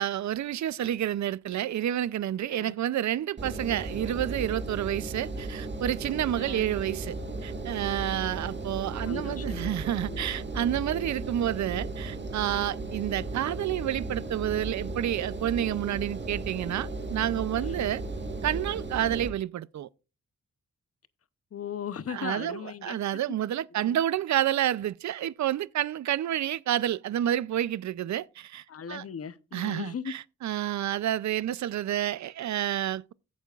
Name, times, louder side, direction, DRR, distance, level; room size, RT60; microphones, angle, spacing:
voice 1, 0.0-7.2 7.4-18.0 18.4-19.9 22.1-29.0 29.5-33.1, right 12 dB, 65° right, 0.5 m, -29 dB
Engine, 3.4-19.3, right 2 dB, 35° right, 1.8 m, -36 dB
voice 2, 6.4-6.8 9.0-9.7 10.0-10.3 17.6-17.9 21.5-23.0 23.7-24.0 28.7-30.1, left 7 dB, 50° left, 0.7 m, -38 dB
15.0 x 8.4 x 2.4 m
wide cardioid pair, 125°, 31 cm